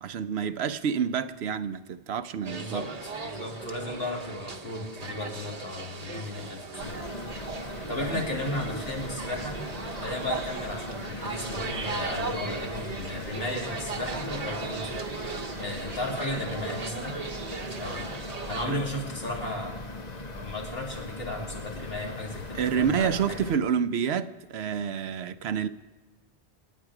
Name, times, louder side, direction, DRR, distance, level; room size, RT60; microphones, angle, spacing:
voice 1, 0.0-2.9 8.1-8.2 18.6-18.8 22.5-25.7, right 7 dB, 90° right, 1.0 m, -28 dB
voice 2, 2.4-7.0 7.9-9.6 10.0-15.0 15.6-17.2 17.8-19.8 20.3-23.4, left 1 dB, 70° left, 3.1 m, -35 dB
sound 1, 2.4-18.7, right 4 dB, 40° right, 1.0 m, -37 dB
sound 2, 6.8-23.6, left 2 dB, 45° left, 1.2 m, -40 dB
27.0 x 9.4 x 4.9 m
omnidirectional pair, 1.0 m